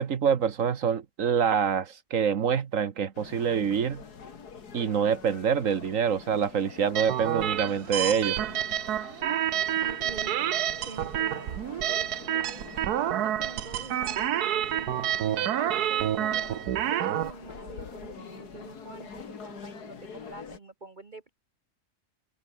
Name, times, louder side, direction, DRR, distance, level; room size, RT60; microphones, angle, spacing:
voice 1, 0.0-4.0 4.7-8.4, right 7 dB, 55° right, 1.5 m, -26 dB
sound 1, 3.1-20.6, left 6 dB, 75° left, 2.6 m, -46 dB
sound 2, 7.0-17.3, right 11 dB, 75° right, 1.4 m, -28 dB
voice 2, 9.8-10.4 10.8-12.6 13.2-14.9 15.6-21.3, right 3 dB, 30° right, 1.4 m, -45 dB
omnidirectional pair, 1.7 m